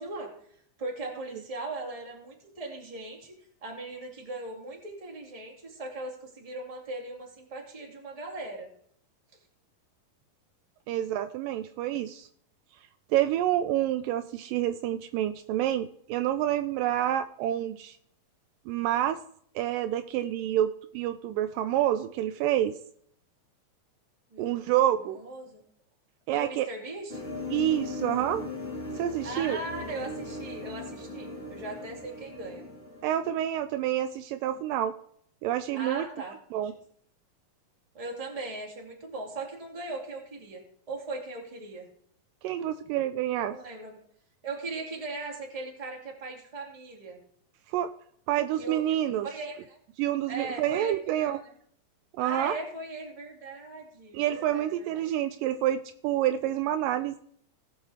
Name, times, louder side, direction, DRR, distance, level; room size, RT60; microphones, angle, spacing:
voice 1, 0.0-8.7 24.3-25.6 26.3-27.3 29.2-32.7 35.7-36.7 37.9-40.6 40.9-41.9 43.4-44.0 44.4-47.2 48.6-48.8 49.2-49.8 50.3-51.5 52.2-55.1, right 2 dB, 15° right, -1 dB, 1.7 m, -39 dB
voice 2, 10.9-12.3 13.1-18.0 18.7-19.2 19.6-22.7 24.4-25.2 26.3-26.7 27.5-28.4 29.0-29.6 33.0-34.9 35.4-36.1 36.5-36.7 42.4-43.6 47.7-47.9 48.3-49.3 50.0-51.4 52.2-52.6 54.1-57.2, right 12 dB, 80° right, 10 dB, 2.1 m, -28 dB
sound 1, 27.1-33.7, left 2 dB, 25° left, 1.5 m, -39 dB
18.5 x 6.6 x 3.4 m, 0.65 s
omnidirectional pair, 4.1 m